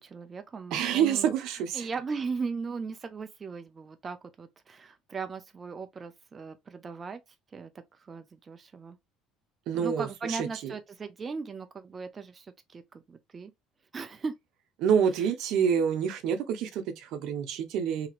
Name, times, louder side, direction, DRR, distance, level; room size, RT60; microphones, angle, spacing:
voice 1, 0.0-1.4 1.7-7.2 7.5-9.0 9.7-13.5 13.9-14.3, right 4 dB, 30° right, 0.5 m, -38 dB
voice 2, 0.7-1.9 9.7-10.7 14.8-18.1, right 8 dB, 70° right, 0.8 m, -27 dB
2.9 x 2.8 x 2.4 m
supercardioid pair, 100°, 0 cm